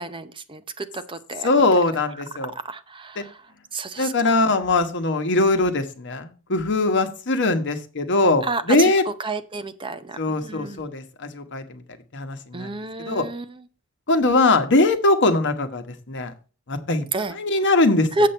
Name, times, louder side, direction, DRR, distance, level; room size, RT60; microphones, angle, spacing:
voice 1, 0.0-1.5 2.6-3.4 3.7-4.4 8.4-10.8 12.5-13.6 17.1-17.3 18.2-18.3, right 2 dB, 25° right, 10 dB, 0.7 m, -29 dB
voice 2, 1.4-2.5 3.2-3.3 4.0-9.0 10.2-11.8 12.1-12.7 13.0-13.2 14.1-16.3 16.7-17.0 17.3-18.1, left 2 dB, 60° left, 7 dB, 1.2 m, -21 dB
7.6 x 7.4 x 4.3 m, 0.35 s
head